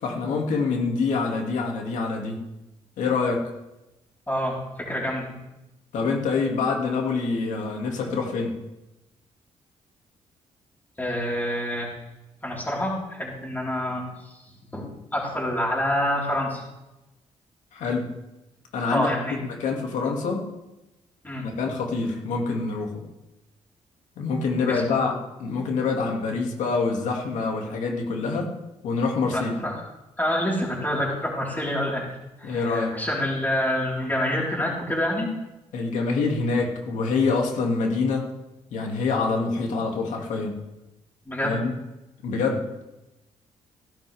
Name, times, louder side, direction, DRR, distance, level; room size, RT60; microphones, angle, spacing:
voice 1, 0.0-2.4 3.0-3.4 5.9-8.5 17.7-18.0 18.7-19.1 19.6-20.4 21.4-23.0 24.2-25.1 25.4-28.5 28.8-29.5 32.4-33.0 35.7-38.3 38.7-40.5 41.4-41.7 42.2-42.8, left 4 dB, 85° left, 0 dB, 2.5 m, -26 dB
voice 2, 4.3-5.3 11.0-11.9 12.4-14.0 14.7-16.6 18.9-19.4 21.2-21.5 24.7-25.0 29.3-29.7 30.2-35.3 41.2-41.6, left 1 dB, 15° left, -4 dB, 4.6 m, -27 dB
17.0 x 11.0 x 3.6 m, 0.97 s
cardioid pair, 90°, 12 cm